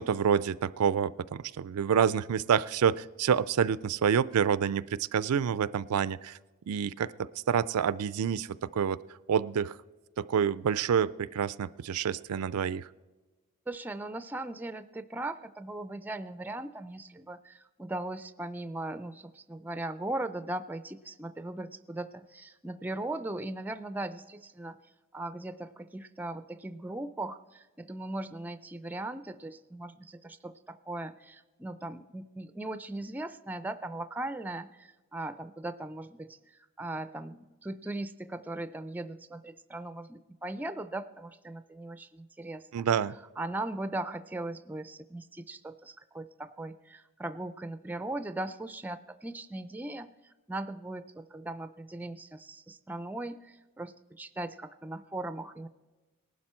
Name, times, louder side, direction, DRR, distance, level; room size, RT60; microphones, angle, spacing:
voice 1, 0.0-6.4 6.7-9.0 9.3-9.8 10.2-12.9 42.7-43.2, right 7 dB, 90° right, 18 dB, 0.4 m, -28 dB
voice 2, 13.7-24.8 25.1-42.9 43.4-55.7, right 2 dB, 10° right, 12 dB, 0.4 m, -39 dB
19.0 x 12.0 x 4.4 m, 1.2 s
head